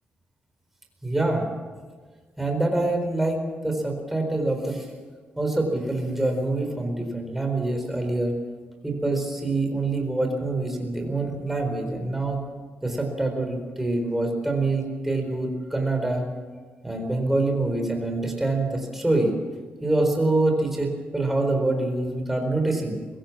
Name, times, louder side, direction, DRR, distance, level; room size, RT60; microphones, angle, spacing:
voice 1, 1.0-1.5 2.4-4.9 5.4-8.4 8.8-12.4 12.8-16.2 16.8-19.4 19.8-23.0, right 2 dB, 5° right, 3 dB, 4.3 m, -25 dB
22.5 x 16.5 x 7.5 m, 1.4 s
wide cardioid pair, 160°, 4 cm